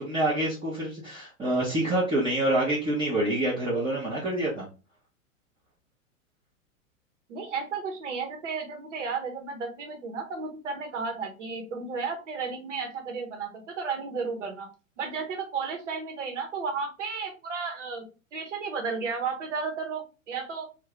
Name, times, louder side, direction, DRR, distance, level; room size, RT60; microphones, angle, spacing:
voice 1, 0.0-4.7, right 1 dB, 10° right, -6 dB, 0.7 m, -27 dB
voice 2, 7.3-14.7 15.0-20.7, right 5 dB, 60° right, 3 dB, 1.1 m, -33 dB
2.7 x 2.5 x 3.2 m, 0.32 s
figure-of-eight pair, 100°, 40 cm